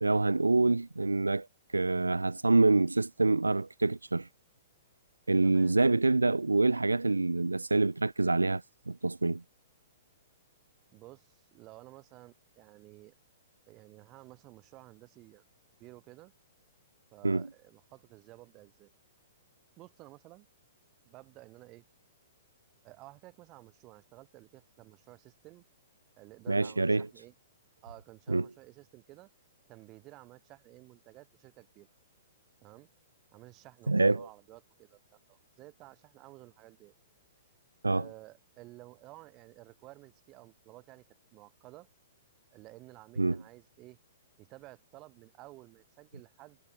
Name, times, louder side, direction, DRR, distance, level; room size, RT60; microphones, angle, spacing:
voice 1, 0.0-1.5 1.7-4.3 5.3-9.4 17.2-17.5 26.5-27.1 28.3-28.5 33.9-34.3 37.8-38.1 43.2-43.4, right 3 dB, 80° right, 0.4 m, -26 dB
voice 2, 5.4-5.8 10.9-13.1 13.7-15.4 15.8-16.3 17.1-18.9 19.8-20.5 21.0-21.8 22.8-25.6 26.2-27.3 27.8-29.3 29.7-31.9 32.6-32.9 33.3-36.9 37.9-41.0 41.3-41.9 42.5-44.0 44.4-46.6, right 19 dB, 30° right, 4.3 m, -53 dB
figure-of-eight pair, 110°, 0 cm